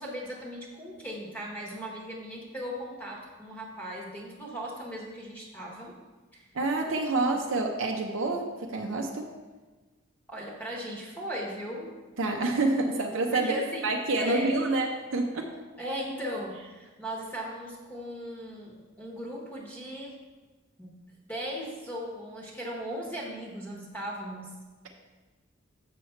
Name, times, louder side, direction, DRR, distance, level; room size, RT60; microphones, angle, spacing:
voice 1, 0.0-5.9 6.3-6.5 10.3-12.0 13.3-13.9 14.1-14.6 15.8-20.1 20.8-20.9 21.3-24.6, equal, 10° left, -3 dB, 1.1 m, -37 dB
voice 2, 6.5-9.3 12.2-13.6 13.8-15.5, right 2 dB, 65° right, 1 dB, 0.7 m, -28 dB
6.8 x 6.4 x 4.4 m, 1.3 s
head